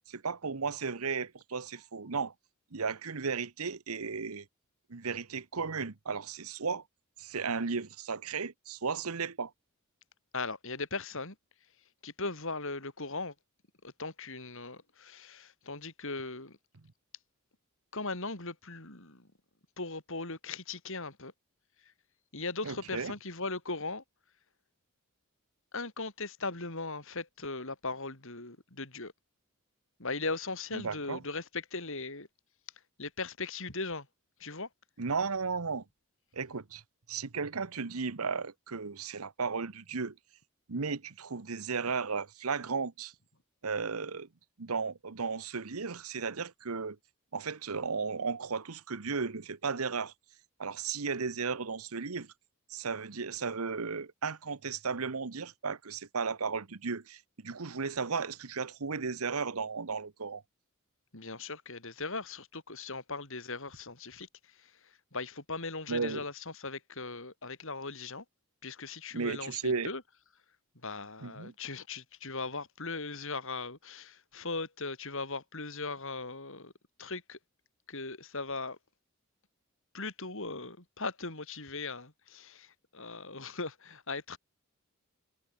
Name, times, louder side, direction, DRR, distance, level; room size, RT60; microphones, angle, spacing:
voice 1, 0.1-2.3 2.7-4.5 4.9-6.8 7.2-9.5 22.6-23.1 30.7-31.2 35.0-35.8 36.3-36.8 37.1-40.1 40.7-43.1 43.6-44.3 44.6-47.0 47.3-50.1 50.6-52.3 52.7-60.4 65.9-66.2 69.1-69.9 71.2-71.5, right 5 dB, 80° right, 1.0 m, -35 dB
voice 2, 10.3-11.4 12.0-13.3 13.8-16.6 17.9-19.3 19.8-21.3 21.8-21.9 22.3-24.0 25.7-29.1 30.0-32.3 33.0-34.1 34.4-34.7 61.1-68.2 68.6-70.0 70.8-76.7 77.0-77.4 77.9-78.8 79.9-84.4, left 3 dB, 60° left, 5.4 m, -39 dB
head